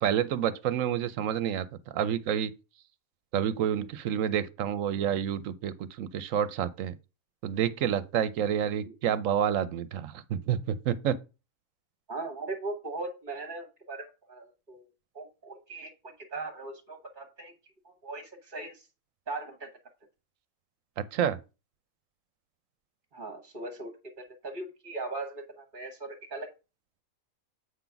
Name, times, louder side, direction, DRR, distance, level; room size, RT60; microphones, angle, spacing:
voice 1, 0.0-1.7 1.9-2.5 3.3-6.9 7.4-11.2 21.0-21.4, right 9 dB, 75° right, 1.0 m, -29 dB
voice 2, 12.1-14.9 15.1-17.5 17.8-18.9 19.3-19.7 23.1-26.5, right 3 dB, 40° right, 1.2 m, -39 dB
8.0 x 3.9 x 5.8 m
omnidirectional pair, 1.4 m